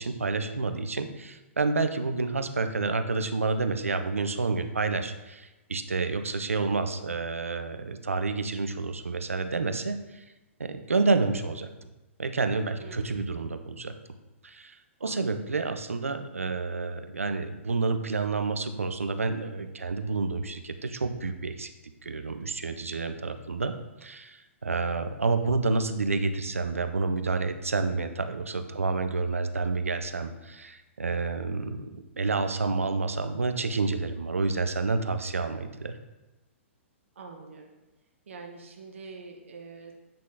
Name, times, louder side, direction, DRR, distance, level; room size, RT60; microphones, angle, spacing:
voice 1, 0.0-10.2 10.6-11.9 12.2-13.9 14.4-21.7 22.0-23.7 24.0-35.9, right 3 dB, 85° right, 9 dB, 0.5 m, -29 dB
voice 2, 12.8-13.4 15.0-15.3 28.7-28.9 37.2-37.8 38.3-39.9, right 4 dB, 70° right, 1 dB, 0.9 m, -45 dB
8.7 x 3.7 x 3.6 m, 1.0 s
figure-of-eight pair, 115°, 7 cm